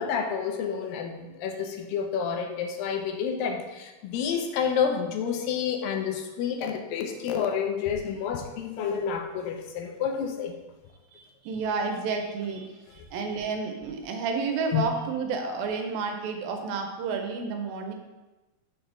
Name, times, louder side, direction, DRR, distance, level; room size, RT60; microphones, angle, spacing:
voice 1, 0.0-10.5 14.7-14.9, left 7 dB, 80° left, 4 dB, 2.2 m, -29 dB
voice 2, 11.1-12.7 13.1-17.9, right 4 dB, 85° right, 4 dB, 2.5 m, -30 dB
6.5 x 3.3 x 5.8 m, 1.1 s
omnidirectional pair, 4.2 m